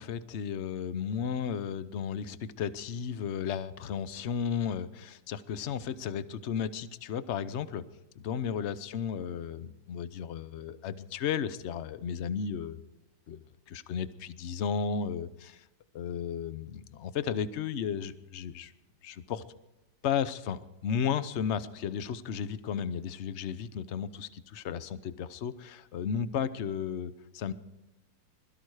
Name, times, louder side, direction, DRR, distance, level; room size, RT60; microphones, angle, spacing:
voice 1, 0.0-7.8 8.2-12.8 13.3-15.6 15.9-18.7 19.0-19.4 20.0-27.5, left 7 dB, 55° left, 14 dB, 0.8 m, -34 dB
21.0 x 13.5 x 4.8 m, 0.97 s
omnidirectional pair, 2.0 m